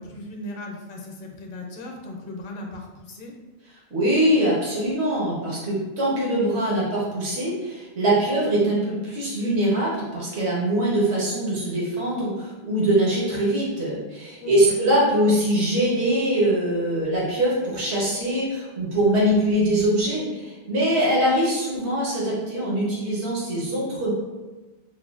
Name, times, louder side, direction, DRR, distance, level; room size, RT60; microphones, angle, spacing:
voice 1, 0.0-3.3 14.4-14.8, left 1 dB, 55° left, 1 dB, 0.7 m, -37 dB
voice 2, 3.9-24.1, right 1 dB, 85° right, -6 dB, 1.3 m, -23 dB
5.3 x 2.2 x 2.4 m, 1.2 s
omnidirectional pair, 1.1 m